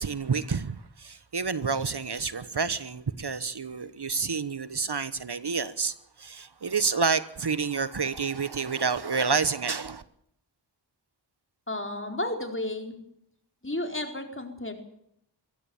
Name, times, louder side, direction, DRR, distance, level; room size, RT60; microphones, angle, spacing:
voice 1, 0.0-10.0, right 5 dB, 60° right, 1.1 m, -29 dB
voice 2, 11.7-12.9 13.6-14.7, left 1 dB, 25° left, 4.4 m, -32 dB
23.0 x 17.0 x 7.2 m
wide cardioid pair, 70°, 45 cm